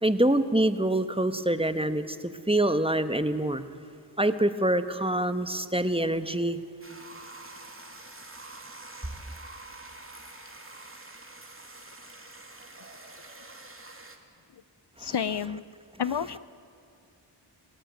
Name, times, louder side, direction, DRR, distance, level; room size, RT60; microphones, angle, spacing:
voice 1, 0.0-3.6 4.2-6.6 15.0-15.1, right 1 dB, 10° right, 10 dB, 1.3 m, -25 dB
sound 1, 6.8-14.2, right 2 dB, 30° right, 3.0 m, -46 dB
voice 2, 15.0-15.6 16.0-16.4, left 8 dB, 65° left, 16 dB, 0.7 m, -29 dB
28.0 x 16.5 x 9.4 m, 2.6 s
wide cardioid pair, 60°, 44 cm